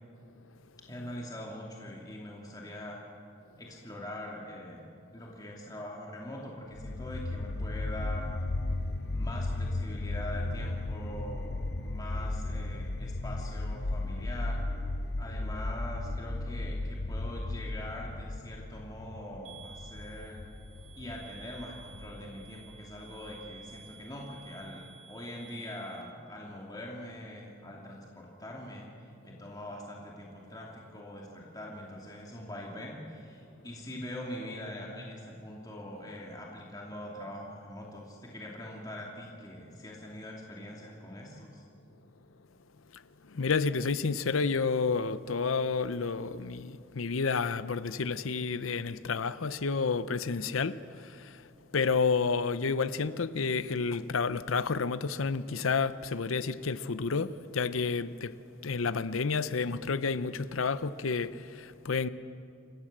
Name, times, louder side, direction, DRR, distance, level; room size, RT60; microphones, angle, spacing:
voice 1, 0.9-3.0 3.6-8.3 9.1-14.6 15.2-20.4 21.0-41.6, left 1 dB, 20° left, 2.5 m, -43 dB
sound 1, 6.7-23.8, left 2 dB, 55° left, 0.9 m, -35 dB
sound 2, 19.4-26.0, right 7 dB, 65° right, 3.2 m, -53 dB
voice 2, 43.3-50.8 51.2-51.4 51.7-58.3 58.6-62.1, left 4 dB, 90° left, 0.7 m, -30 dB
28.0 x 15.5 x 7.5 m
head